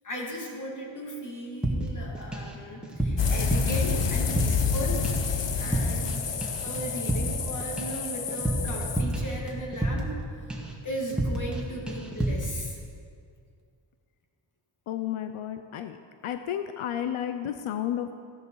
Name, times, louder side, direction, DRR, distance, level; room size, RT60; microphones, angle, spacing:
voice 1, 0.0-5.0 5.6-6.2 6.6-10.5 10.8-12.8, equal, 40° left, -1 dB, 2.8 m, -36 dB
sound 1, 1.6-2.5 2.8-4.8 5.0-5.3 5.6-6.2 6.4-10.2 10.5-10.8 11.1-11.6 11.9-12.5, right 1 dB, ahead, 2.0 m, -30 dB
sound 2, 3.2-9.0, left 6 dB, 60° left, 1.1 m, -29 dB
voice 2, 14.9-16.0 16.2-18.1, left 10 dB, 90° left, 8 dB, 0.7 m, -32 dB
15.0 x 10.5 x 4.7 m, 2.3 s
cardioid pair, 85°, 48 cm